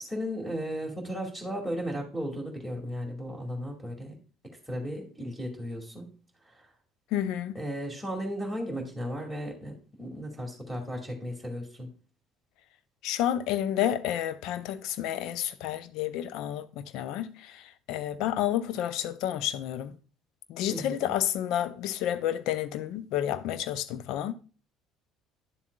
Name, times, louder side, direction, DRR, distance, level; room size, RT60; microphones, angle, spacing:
voice 1, 0.0-4.2 4.7-6.1 7.5-11.9 20.7-21.1, equal, 5° left, 2.3 m, -35 dB
voice 2, 7.1-7.6 13.0-17.6 17.9-19.9 20.5-24.3, left 11 dB, 60° left, 0.5 m, -30 dB
10.5 x 7.1 x 2.3 m
figure-of-eight pair, 55°, 0 cm